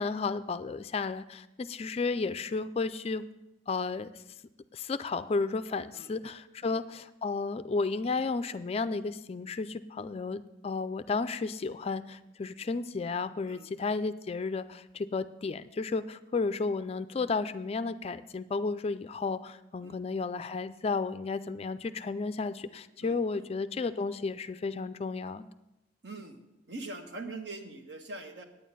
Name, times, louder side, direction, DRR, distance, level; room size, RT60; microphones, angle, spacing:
voice 1, 0.0-3.2 3.7-4.1 4.7-25.5, left 4 dB, 35° left, 12 dB, 0.3 m, -33 dB
voice 2, 23.0-23.4 26.0-26.4 26.7-28.4, right 2 dB, 65° right, 5 dB, 1.2 m, -43 dB
9.3 x 9.2 x 5.4 m, 0.94 s
head